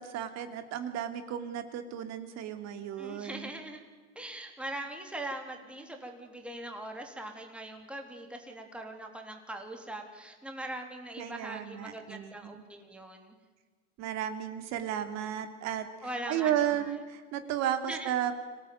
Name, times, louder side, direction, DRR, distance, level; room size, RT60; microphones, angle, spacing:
voice 1, 0.0-3.5 11.2-12.6 14.0-18.3, right 10 dB, 45° right, 9 dB, 3.0 m, -34 dB
voice 2, 3.0-3.8 4.1-13.4 16.0-16.9 17.9-18.1, right 1 dB, 5° right, 3 dB, 3.3 m, -41 dB
25.5 x 18.0 x 9.4 m, 1.4 s
supercardioid pair, 115°, 36 cm